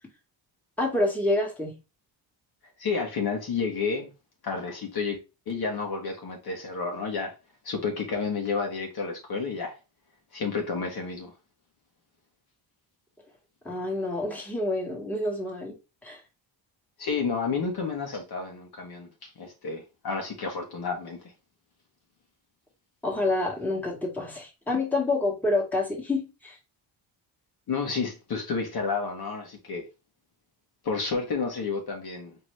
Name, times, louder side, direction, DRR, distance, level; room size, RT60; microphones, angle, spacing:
voice 1, 0.8-1.8 13.6-15.7 16.0-16.2 23.0-26.5, left 2 dB, 5° left, 1.6 m, -28 dB
voice 2, 2.8-4.1 4.4-5.2 5.5-7.3 7.6-9.8 10.3-11.3 17.0-21.2 27.7-29.8 30.8-32.4, left 4 dB, 55° left, 1.3 m, -30 dB
4.5 x 3.0 x 3.2 m
cardioid pair, 110°, 45 cm